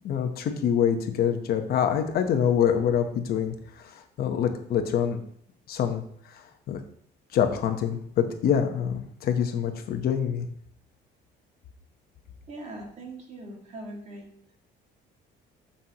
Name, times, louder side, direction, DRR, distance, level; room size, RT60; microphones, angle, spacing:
voice 1, 0.0-5.2 5.7-6.8 7.3-10.5, left 8 dB, 55° left, 6 dB, 0.9 m, -26 dB
voice 2, 12.5-14.3, right 2 dB, 35° right, 0 dB, 2.0 m, -41 dB
14.0 x 5.6 x 2.9 m, 0.65 s
cardioid pair, 170°, 19 cm